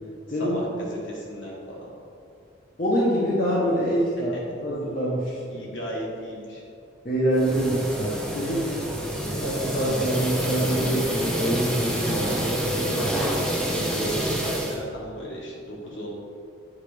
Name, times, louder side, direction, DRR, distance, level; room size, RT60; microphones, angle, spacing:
voice 1, 0.3-1.9 5.5-6.6 12.2-16.1, equal, 65° left, -4 dB, 1.7 m, -34 dB
voice 2, 2.8-4.3 4.6-5.7 7.0-8.7 9.2-12.4, equal, 45° left, -7 dB, 1.1 m, -25 dB
sound 1, 7.3-14.8, right 1 dB, 5° left, 0.7 m, -28 dB
8.3 x 4.1 x 5.0 m, 2.4 s
head